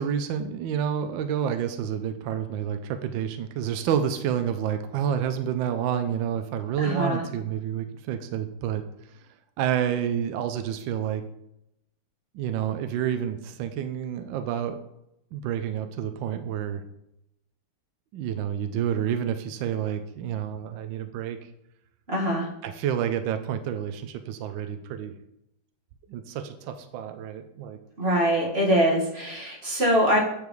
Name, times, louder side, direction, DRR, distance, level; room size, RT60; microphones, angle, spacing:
voice 1, 0.0-8.8 9.6-11.2 12.3-14.8 15.3-16.8 18.1-21.4 22.6-25.1 26.1-27.8, right 9 dB, 75° right, 8 dB, 1.2 m, -29 dB
voice 2, 6.8-7.2 22.1-22.5 28.0-30.2, equal, 30° right, -3 dB, 1.9 m, -23 dB
8.1 x 6.9 x 3.1 m, 0.83 s
omnidirectional pair, 2.2 m